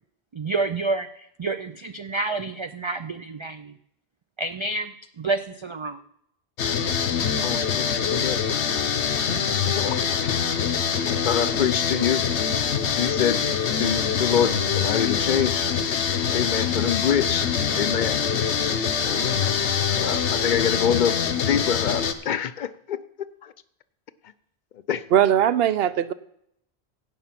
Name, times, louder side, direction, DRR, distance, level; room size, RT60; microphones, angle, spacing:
voice 1, 0.3-3.8 4.4-6.0, right 3 dB, 45° right, 10 dB, 0.4 m, -29 dB
sound 1, 6.6-22.1, left 7 dB, 85° left, 1.2 m, -24 dB
voice 2, 7.4-8.4 9.7-10.4 11.0-12.3 13.0-13.5 13.8-15.7 16.3-18.3 19.1-19.6 19.9-21.2 21.5-23.0 23.4-23.5 24.9-25.0, left 8 dB, 55° left, 15 dB, 0.6 m, -26 dB
voice 3, 25.1-26.1, right 10 dB, 70° right, 16 dB, 0.8 m, -19 dB
16.5 x 5.6 x 5.8 m, 0.73 s
omnidirectional pair, 1.1 m